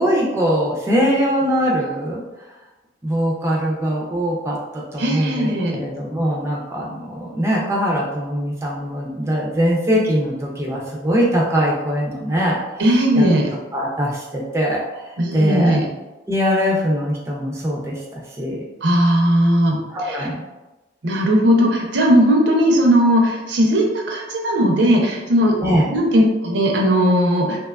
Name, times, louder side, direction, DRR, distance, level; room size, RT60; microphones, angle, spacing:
voice 1, 0.0-2.2 3.0-13.3 13.7-15.8 16.3-18.6 19.9-20.4 25.6-25.9, equal, 15° right, -3 dB, 0.3 m, -22 dB
voice 2, 5.0-5.8 12.8-13.5 15.2-15.8 18.8-20.3 21.0-25.6 25.9-27.6, equal, 75° right, 0 dB, 0.5 m, -17 dB
2.7 x 2.2 x 2.2 m, 1.1 s
head